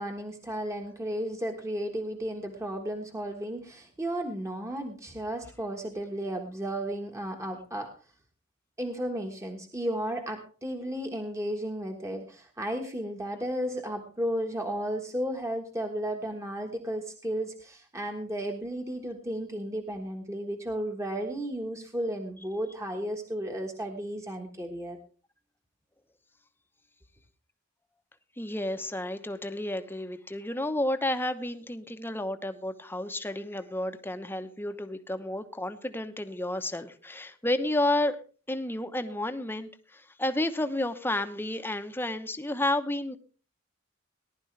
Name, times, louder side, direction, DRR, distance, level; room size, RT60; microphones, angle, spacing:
voice 1, 0.0-7.9 8.8-25.0, right 1 dB, 15° right, 3 dB, 1.4 m, -34 dB
voice 2, 28.4-38.2 38.5-43.2, left 1 dB, 10° left, 8 dB, 0.9 m, -31 dB
19.0 x 11.5 x 3.3 m, 0.38 s
head